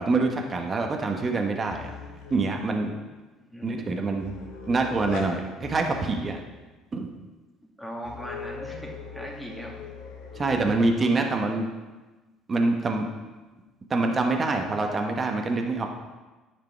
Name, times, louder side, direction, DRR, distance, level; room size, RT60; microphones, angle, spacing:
voice 1, 0.0-1.9 2.3-3.0 3.6-4.3 4.7-6.4 6.9-7.1 10.3-11.7 12.5-13.1 13.9-15.9, right 3 dB, 35° right, 3 dB, 1.1 m, -25 dB
sound 1, 1.7-2.6 4.1-5.3 5.6-6.4 8.0-10.9, left 5 dB, 80° left, 1.4 m, -40 dB
voice 2, 3.4-4.0 7.8-9.7, equal, ahead, -2 dB, 2.2 m, -39 dB
9.8 x 5.0 x 4.5 m, 1.2 s
supercardioid pair, 80°, 0 cm